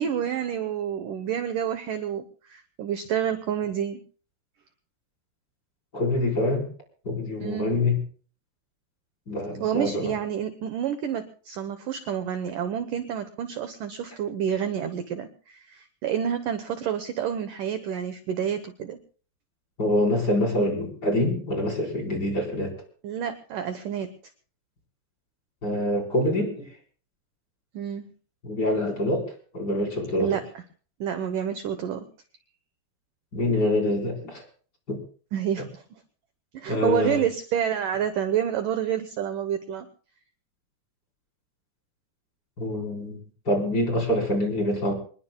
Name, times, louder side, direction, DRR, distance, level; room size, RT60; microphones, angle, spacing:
voice 1, 0.0-4.0 7.4-7.8 9.6-19.0 23.0-24.1 27.7-28.1 30.2-30.4 31.0-32.1 35.3-35.8 36.5-39.9, right 9 dB, 75° right, 8 dB, 1.9 m, -29 dB
voice 2, 5.9-6.7 7.0-8.0 9.3-10.1 19.8-22.7 25.6-26.7 28.4-30.3 33.3-34.4 34.9-35.0 36.7-37.2 42.6-43.2 43.4-44.9, left 1 dB, 25° left, 0 dB, 4.5 m, -25 dB
26.5 x 20.5 x 2.3 m, 0.42 s
omnidirectional pair, 5.1 m